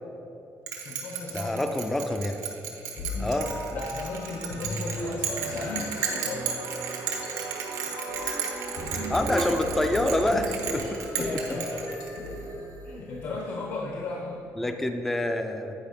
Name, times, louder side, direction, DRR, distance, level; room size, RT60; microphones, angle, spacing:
Bell, 0.7-12.3, right 7 dB, 90° right, 1.1 m, -34 dB
voice 1, 0.8-1.7 3.7-6.5 10.7-11.9 12.8-14.5, left 3 dB, 60° left, 0 dB, 0.8 m, -36 dB
voice 2, 1.3-2.4 3.2-3.5 9.1-10.8 14.6-15.7, left 1 dB, 5° left, 6 dB, 0.3 m, -26 dB
sound 1, 3.0-13.3, left 1 dB, 80° left, 1.5 m, -36 dB
sound 2, 4.8-11.8, right 5 dB, 70° right, 0.7 m, -41 dB
9.0 x 5.0 x 5.1 m, 3.0 s
cardioid pair, 170°, 6 cm